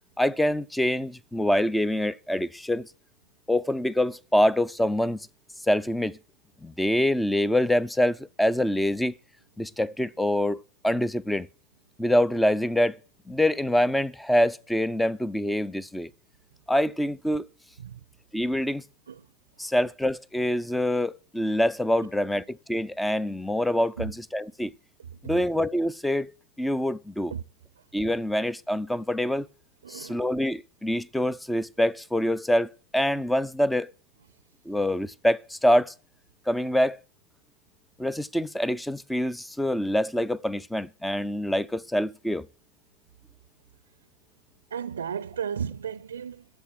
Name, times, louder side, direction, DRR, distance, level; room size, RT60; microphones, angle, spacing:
voice 1, 0.2-2.9 3.5-5.2 5.7-6.2 6.6-9.1 9.6-11.5 12.0-13.0 13.3-16.1 16.7-17.5 18.3-18.8 19.6-24.7 25.2-26.3 26.6-27.3 27.9-29.5 29.9-33.9 34.7-35.9 36.5-37.0 38.0-42.5, left 1 dB, 5° left, 0.6 m, -25 dB
voice 2, 25.0-25.3 27.3-27.4 29.8-30.2 44.7-46.5, right 7 dB, 70° right, 0.6 m, -34 dB
12.5 x 7.4 x 9.8 m
figure-of-eight pair, 85°, 0 cm